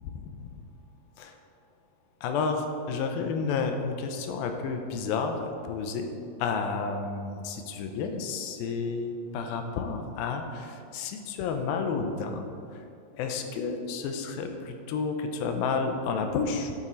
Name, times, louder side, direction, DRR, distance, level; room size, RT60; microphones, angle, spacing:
voice 1, 0.0-0.5 1.2-1.4 2.2-6.1 6.4-12.4 12.7-12.8 13.1-16.7, left 5 dB, 85° left, 5 dB, 2.5 m, -31 dB
12.0 x 7.4 x 3.9 m, 2.4 s
omnidirectional pair, 4.1 m